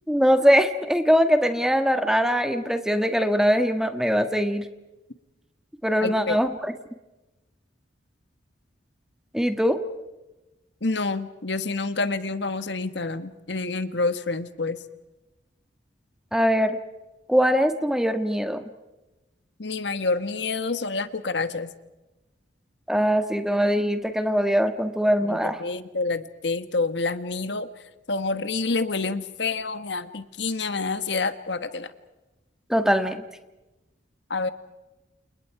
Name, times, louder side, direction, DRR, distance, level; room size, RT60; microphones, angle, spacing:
voice 1, 0.1-4.6 5.8-6.7 9.3-9.8 16.3-16.8 17.3-18.6 22.9-25.6 32.7-33.2, equal, 5° right, 8 dB, 1.6 m, -22 dB
voice 2, 6.0-6.4 10.8-14.8 19.6-21.7 25.2-27.7 28.1-31.9 34.3-34.5, left 3 dB, 65° left, 12 dB, 1.4 m, -28 dB
29.0 x 29.0 x 4.8 m, 1.1 s
head